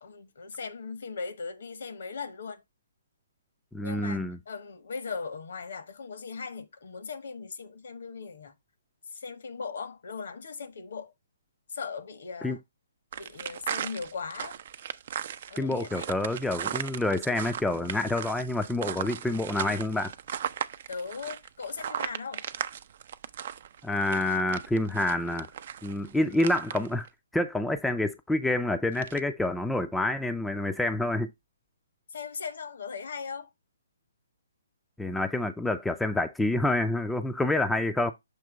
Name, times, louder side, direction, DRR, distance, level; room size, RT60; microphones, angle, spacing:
voice 1, 0.0-2.6 3.8-8.5 9.1-11.1 11.7-12.6 13.1-14.6 15.5-16.1 20.9-22.4 32.1-33.5, left 5 dB, 60° left, 1.1 m, -38 dB
voice 2, 3.7-4.4 12.4-12.6 15.5-20.1 23.8-25.5 25.8-27.1 27.3-31.3 35.0-38.1, left 2 dB, 5° left, 0.5 m, -28 dB
sound 1, 13.1-27.1 28.9-29.2, right 9 dB, 50° right, 0.5 m, -37 dB
6.7 x 3.0 x 4.8 m
figure-of-eight pair, 135°, 0 cm